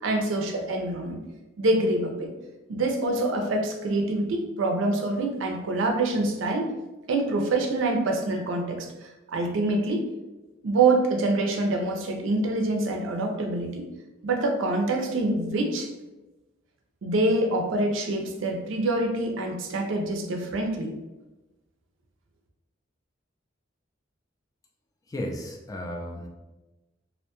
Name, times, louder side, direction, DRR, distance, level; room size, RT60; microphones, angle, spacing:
voice 1, 0.0-1.2 1.6-2.3 2.7-6.7 7.1-8.9 9.3-10.1 10.6-13.9 14.2-15.9 17.0-20.9, right 2 dB, 75° right, 3 dB, 0.4 m, -25 dB
voice 2, 25.1-26.3, left 1 dB, 20° left, 1 dB, 0.3 m, -34 dB
2.5 x 2.2 x 2.8 m, 1.1 s
head